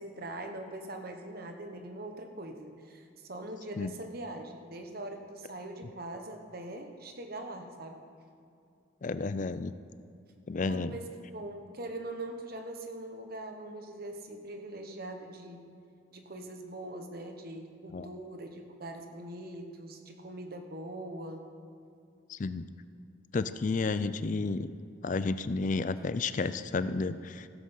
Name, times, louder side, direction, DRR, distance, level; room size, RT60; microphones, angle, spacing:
voice 1, 0.0-8.0 10.7-15.7 16.1-21.5, right 1 dB, 50° right, 5 dB, 1.1 m, -42 dB
voice 2, 9.0-9.7 10.5-10.9 17.9-18.1 22.3-22.7 23.3-24.7 25.0-27.5, left 3 dB, 40° left, 13 dB, 0.4 m, -31 dB
16.5 x 7.5 x 5.6 m, 2.5 s
head